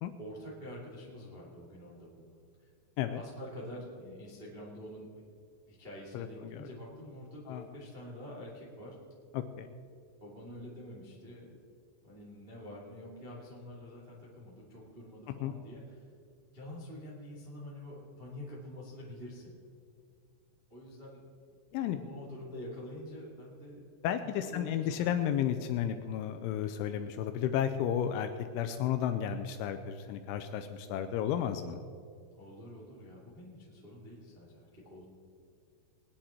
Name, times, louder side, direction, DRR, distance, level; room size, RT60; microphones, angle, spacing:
voice 1, 0.2-2.7 3.1-5.2 5.7-8.9 10.2-11.6 12.0-16.0 16.5-19.5 20.7-21.2 21.9-23.9 24.2-25.3 32.4-35.0, left 1 dB, 75° right, -4 dB, 0.5 m, -47 dB
voice 2, 6.1-6.7 7.5-7.7 9.3-9.7 15.4-15.5 21.7-22.0 24.0-31.8, left 9 dB, 85° left, 8 dB, 2.8 m, -33 dB
21.0 x 10.0 x 4.3 m, 2.3 s
omnidirectional pair, 6.0 m